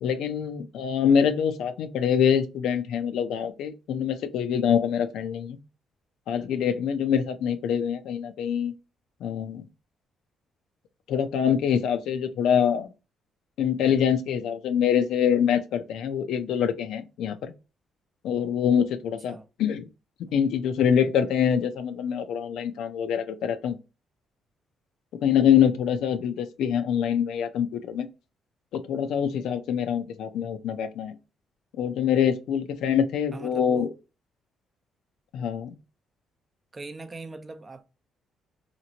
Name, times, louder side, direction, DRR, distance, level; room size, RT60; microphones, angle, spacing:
voice 1, 0.0-5.6 6.3-8.7 9.2-9.6 11.1-12.9 13.6-17.5 18.2-19.9 20.3-23.8 25.2-28.1 28.7-31.2 31.8-33.9 35.3-35.7, left 8 dB, 80° left, 0.5 m, -25 dB
voice 2, 33.3-33.9 36.7-37.8, right 2 dB, 25° right, 0.5 m, -39 dB
2.9 x 2.5 x 2.8 m
cardioid pair, 90°, 0 cm